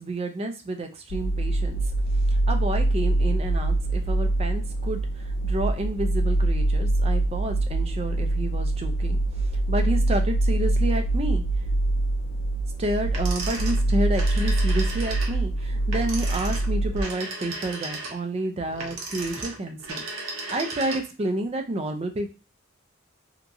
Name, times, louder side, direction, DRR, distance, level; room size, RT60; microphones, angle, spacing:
voice 1, 0.0-1.8 2.3-11.4 12.8-20.0 20.5-22.3, right 1 dB, 30° right, 5 dB, 0.4 m, -30 dB
sound 1, 1.1-17.0, right 2 dB, 70° left, 0.4 m, -24 dB
sound 2, 13.1-21.3, right 2 dB, 70° right, 0.7 m, -35 dB
2.8 x 2.4 x 2.6 m, 0.32 s
head